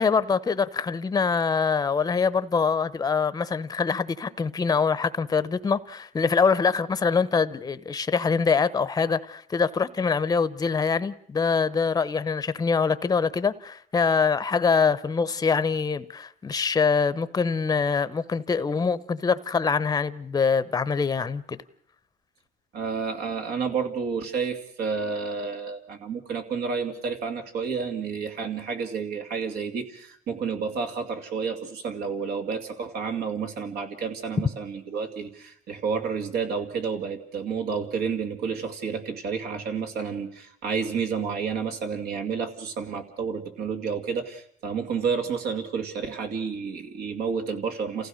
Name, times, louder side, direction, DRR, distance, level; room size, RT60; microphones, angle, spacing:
voice 1, 0.0-21.6, left 5 dB, 20° left, 0.8 m, -24 dB
voice 2, 22.7-48.1, right 5 dB, 70° right, 2.4 m, -30 dB
28.5 x 15.5 x 6.4 m
cardioid pair, 110°, 17 cm